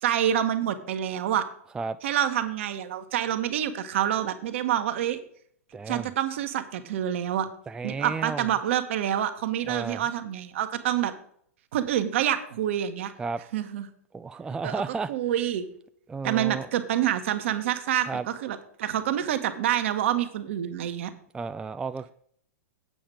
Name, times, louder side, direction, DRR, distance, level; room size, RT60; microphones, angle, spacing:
voice 1, 0.0-1.4 2.0-5.2 5.9-7.5 7.8-11.1 11.7-13.1 13.5-13.9 14.6-14.8 15.1-15.7 16.2-21.1, right 11 dB, 55° right, 9 dB, 1.3 m, -27 dB
voice 2, 5.7-6.1 7.7-8.5 9.7-10.0 13.2-13.4 14.1-15.1 16.1-16.7 18.1-18.3 21.3-22.1, right 4 dB, 10° right, 11 dB, 0.3 m, -32 dB
8.5 x 7.9 x 5.0 m, 0.63 s
figure-of-eight pair, 105°, 8 cm